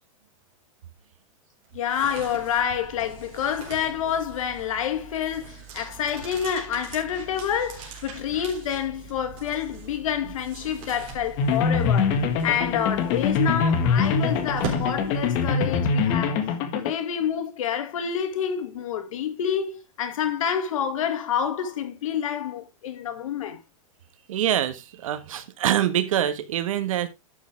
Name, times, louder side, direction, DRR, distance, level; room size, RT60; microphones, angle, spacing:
sound 1, 1.6-15.7, right 3 dB, 35° right, 3.6 m, -40 dB
voice 1, 1.7-16.4 16.7-23.6, left 8 dB, 75° left, 2.2 m, -28 dB
sound 2, 11.4-16.9, left 5 dB, 40° left, 1.6 m, -23 dB
voice 2, 24.3-27.1, right 11 dB, 75° right, 1.5 m, -25 dB
11.5 x 6.7 x 3.4 m
supercardioid pair, 160°, 17 cm